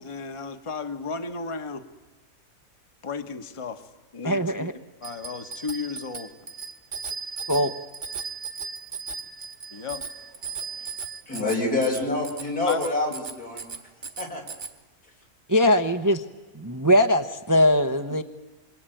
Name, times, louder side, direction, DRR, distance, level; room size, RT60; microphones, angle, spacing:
voice 1, 0.0-1.8 3.0-3.8 4.1-4.7 5.0-6.3 9.7-10.0 12.6-12.8, left 4 dB, 20° left, 7 dB, 1.3 m, -33 dB
voice 2, 4.2-4.7 7.5-7.7 15.5-16.2 16.5-18.2, left 1 dB, 15° right, 8 dB, 0.8 m, -21 dB
Bicycle bell, 5.0-14.7, right 5 dB, 50° right, 1.9 m, -37 dB
voice 3, 11.3-13.7 14.2-14.4, left 2 dB, 85° left, 0 dB, 5.6 m, -26 dB
27.5 x 23.0 x 9.2 m, 1.2 s
omnidirectional pair, 1.6 m